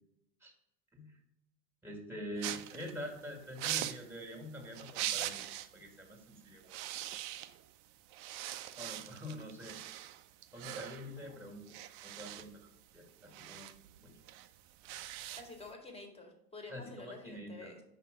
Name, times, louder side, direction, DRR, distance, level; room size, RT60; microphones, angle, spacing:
voice 1, 1.8-6.8 7.1-7.2 8.8-9.8 10.5-11.6 12.0-12.7 12.9-13.7 14.0-14.1 16.7-17.7, equal, 5° right, 3 dB, 1.8 m, -45 dB
sound 1, 2.4-5.8 6.1-6.3 6.6-7.8 8.1-15.7, right 13 dB, 45° right, 0.6 m, -42 dB
voice 2, 15.4-17.8, left 3 dB, 15° left, 3 dB, 1.6 m, -49 dB
5.5 x 4.8 x 4.9 m, 0.84 s
hypercardioid pair, 90°, 45 cm